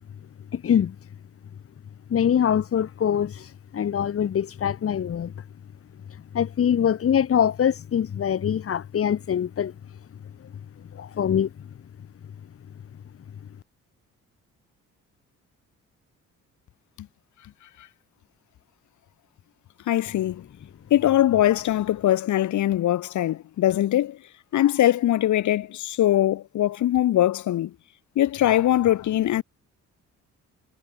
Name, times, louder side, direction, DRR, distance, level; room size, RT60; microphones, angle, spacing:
voice 1, 0.5-0.9 2.1-3.5 3.7-5.3 6.3-9.7 10.9-11.5, left 9 dB, 50° left, 1.5 m, -23 dB
voice 2, 19.9-20.4 20.9-24.2 24.5-27.7 28.2-29.4, left 13 dB, 75° left, 1.8 m, -21 dB
cardioid pair, 90°, 30 cm